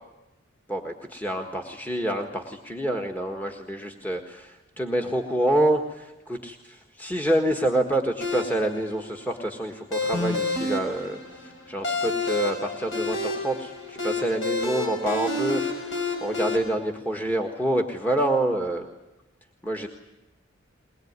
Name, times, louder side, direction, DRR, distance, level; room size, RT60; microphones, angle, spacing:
voice 1, 0.7-18.9 19.6-19.9, right 1 dB, 10° left, 3 dB, 1.6 m, -27 dB
sound 1, 8.2-16.6, left 2 dB, 65° left, 6.2 m, -29 dB
22.0 x 21.0 x 9.6 m, 0.99 s
head